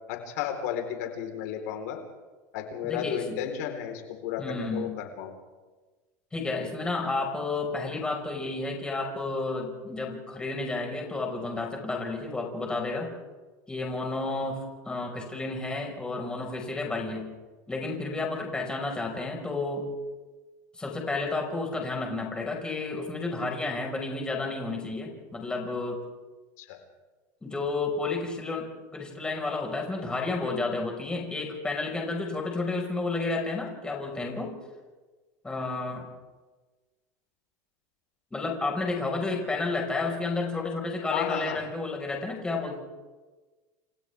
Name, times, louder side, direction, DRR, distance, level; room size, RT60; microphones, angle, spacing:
voice 1, 0.1-2.0 2.5-5.3 26.6-26.8 41.1-41.6, left 9 dB, 75° left, 3 dB, 4.1 m, -33 dB
voice 2, 2.8-3.4 4.4-4.9 6.3-13.1 13.7-17.3 17.7-19.8 20.8-26.0 27.4-28.7 28.9-34.5 35.4-36.1 38.3-42.8, left 3 dB, 10° left, 0 dB, 5.2 m, -31 dB
29.5 x 26.5 x 3.6 m, 1.3 s
supercardioid pair, 140°, 9 cm